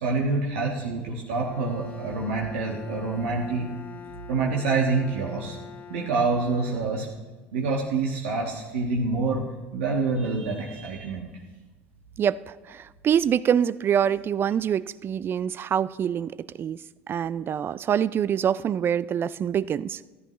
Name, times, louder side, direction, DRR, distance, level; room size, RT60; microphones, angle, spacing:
voice 1, 0.0-3.7 4.3-5.5 5.9-7.1 7.5-9.5 9.7-11.3, right 3 dB, 80° right, -3 dB, 1.4 m, -26 dB
Bowed string instrument, 1.3-7.5, left 7 dB, 25° left, 1.2 m, -45 dB
voice 2, 12.2-20.0, right 9 dB, 35° right, 19 dB, 0.3 m, -25 dB
14.0 x 11.0 x 3.1 m, 1.3 s
hypercardioid pair, 75°, 6 cm